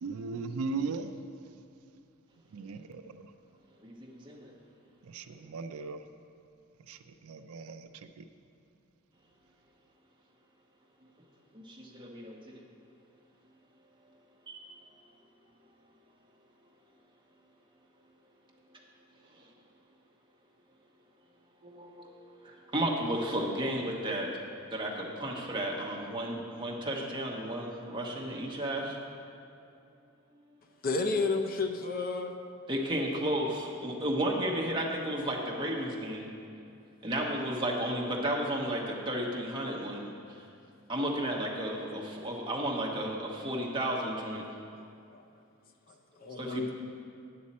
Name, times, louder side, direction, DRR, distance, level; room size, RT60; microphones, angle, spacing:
voice 1, 0.0-1.1 2.5-3.3 5.0-6.0 6.9-8.2, right 4 dB, 85° right, 9 dB, 0.4 m, -38 dB
voice 2, 3.8-4.5 11.5-12.6 14.5-14.6 21.6-24.3 24.7-29.0 32.7-36.3 37.0-40.4 40.9-44.4 46.4-46.7, right 1 dB, 20° right, -2 dB, 1.1 m, -33 dB
voice 3, 30.8-32.3 45.1-45.2 46.2-46.7, left 3 dB, 40° left, 5 dB, 0.5 m, -31 dB
9.4 x 8.5 x 4.2 m, 2.6 s
head